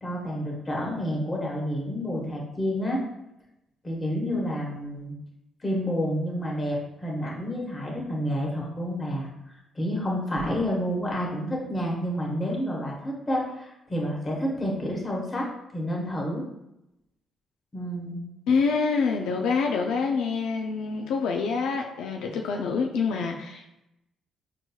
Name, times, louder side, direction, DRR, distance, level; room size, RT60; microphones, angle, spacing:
voice 1, 0.0-3.0 3.8-5.1 5.6-15.5 15.7-16.4 17.7-18.2, equal, 25° left, -2 dB, 1.1 m, -29 dB
voice 2, 18.5-23.8, left 5 dB, 85° left, 2 dB, 0.3 m, -26 dB
4.5 x 2.9 x 2.3 m, 0.88 s
cardioid pair, 90°, 0 cm